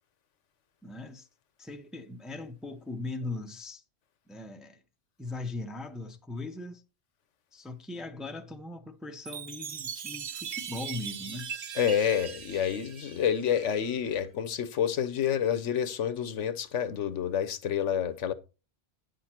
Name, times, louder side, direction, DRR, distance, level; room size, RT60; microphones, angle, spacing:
voice 1, 0.8-1.3 1.6-3.8 4.3-4.8 5.2-6.8 7.5-11.5, left 2 dB, ahead, 0.6 m, -39 dB
Chime, 9.3-13.9, right 8 dB, 70° right, 1.0 m, -40 dB
voice 2, 11.8-18.3, left 8 dB, 80° left, 1.2 m, -28 dB
9.9 x 6.5 x 4.4 m
omnidirectional pair, 1.2 m